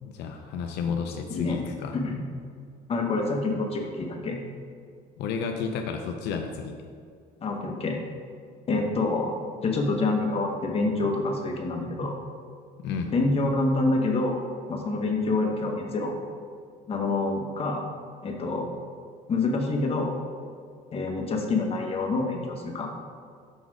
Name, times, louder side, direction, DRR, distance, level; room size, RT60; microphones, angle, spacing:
voice 1, 0.0-2.0 5.2-6.8 12.8-13.2, left 6 dB, 80° left, 4 dB, 0.5 m, -31 dB
voice 2, 1.3-1.6 1.9-2.1 2.9-4.4 7.4-8.0 8.7-9.4 9.6-12.2 13.1-14.4 14.7-16.1 16.9-17.8 18.2-18.7 19.3-20.2 20.9-22.9, left 3 dB, 35° left, 1 dB, 1.0 m, -27 dB
6.3 x 3.9 x 4.7 m, 2.2 s
cardioid pair, 110°, 17 cm